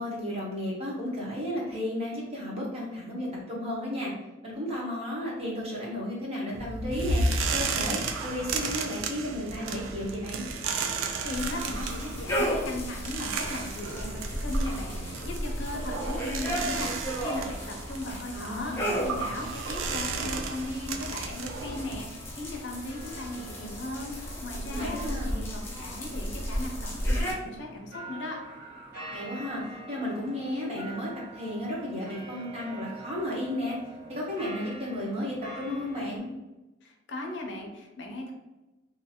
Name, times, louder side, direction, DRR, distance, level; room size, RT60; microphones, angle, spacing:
voice 1, 0.0-4.1 4.4-7.2 7.5-10.4 18.3-19.0 24.7-25.4 29.1-33.8 34.1-36.3, left 1 dB, 30° right, -5 dB, 1.0 m, -33 dB
sound 1, 6.5-22.0, right 4 dB, 85° right, 0.4 m, -33 dB
voice 2, 10.9-28.4 36.8-38.3, left 1 dB, 60° left, 1 dB, 0.6 m, -38 dB
sound 2, 11.3-27.3, equal, 10° left, 0.5 m, -34 dB
sound 3, 22.9-36.2, right 2 dB, 50° right, 1.2 m, -46 dB
2.7 x 2.5 x 2.7 m, 1.0 s
head